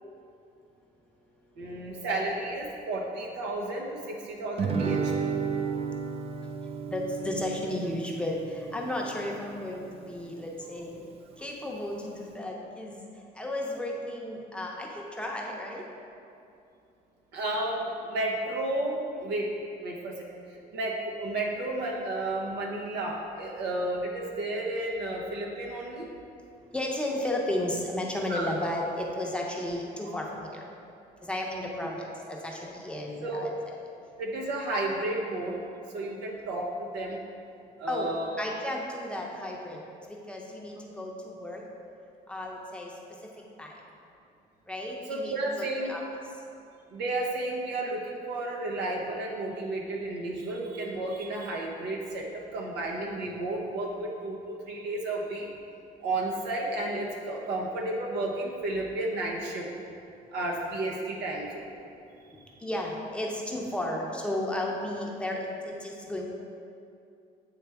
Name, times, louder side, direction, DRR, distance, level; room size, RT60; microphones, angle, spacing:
voice 1, 1.6-5.3 17.3-19.5 19.8-20.2 20.5-26.1 28.3-28.5 30.0-30.2 33.2-33.6 34.2-35.6 35.9-37.2 37.8-38.4 45.1-45.9 46.9-55.5 56.0-59.7 60.3-61.7, right 2 dB, 85° right, -1 dB, 1.0 m, -32 dB
Guitar, 4.6-9.6, right 5 dB, 35° right, 0.4 m, -33 dB
voice 2, 6.9-11.0 11.4-13.0 13.3-15.9 26.7-30.7 31.2-33.8 37.9-39.8 40.1-41.6 42.3-42.9 43.6-43.8 44.7-46.0 62.6-66.3, left 1 dB, 5° left, -2 dB, 0.7 m, -33 dB
8.8 x 3.3 x 3.4 m, 2.5 s
cardioid pair, 110°, 17 cm